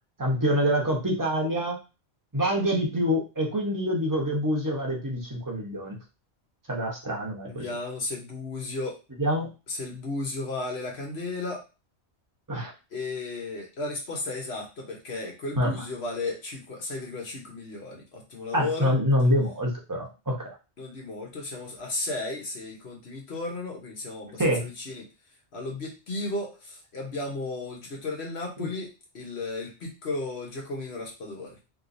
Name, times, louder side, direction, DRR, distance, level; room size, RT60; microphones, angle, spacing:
voice 1, 0.2-1.8 2.3-6.0 6.7-7.6 9.2-9.5 12.5-12.7 15.6-15.7 18.5-20.5 24.4-24.6 28.6-28.7, equal, 20° right, -2 dB, 0.9 m, -26 dB
voice 2, 7.5-9.0 9.7-11.6 12.9-18.9 20.8-25.1 25.5-31.6, left 2 dB, 70° left, -1 dB, 1.3 m, -34 dB
3.2 x 3.1 x 2.6 m, 0.30 s
omnidirectional pair, 1.1 m